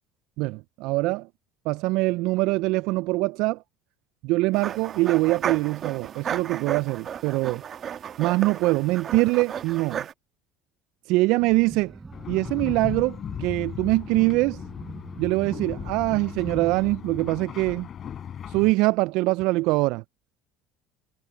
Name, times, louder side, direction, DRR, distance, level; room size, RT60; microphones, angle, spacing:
voice 1, 0.4-1.3 1.7-3.6 4.2-7.6 8.2-10.1 11.1-11.9 12.3-14.6 15.2-17.9 18.5-20.0, right 22 dB, 70° right, 0.3 m, -23 dB
sound 1, 4.5-10.1, right 8 dB, 45° right, 1.6 m, -34 dB
sound 2, 11.4-16.9, right 3 dB, 20° right, 5.0 m, -43 dB
sound 3, 12.1-18.7, left 9 dB, 45° left, 4.2 m, -37 dB
supercardioid pair, 90°, 0 cm